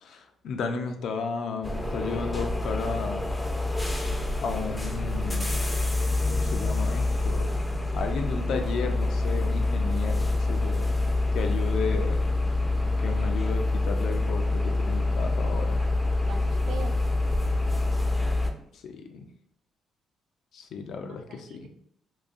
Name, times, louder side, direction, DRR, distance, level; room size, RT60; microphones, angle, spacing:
voice 1, 0.0-3.2 4.4-5.6 6.3-7.5 7.9-10.9 11.3-12.2 13.0-15.8 18.8-19.2 20.5-21.7, left 5 dB, 70° left, 5 dB, 0.5 m, -33 dB
sound 1, 1.6-18.5, left 2 dB, 15° left, 0.5 m, -26 dB
voice 2, 16.3-17.0 21.0-21.7, right 5 dB, 75° right, 6 dB, 0.4 m, -42 dB
3.8 x 2.6 x 2.5 m, 0.71 s
cardioid pair, 90°, 0 cm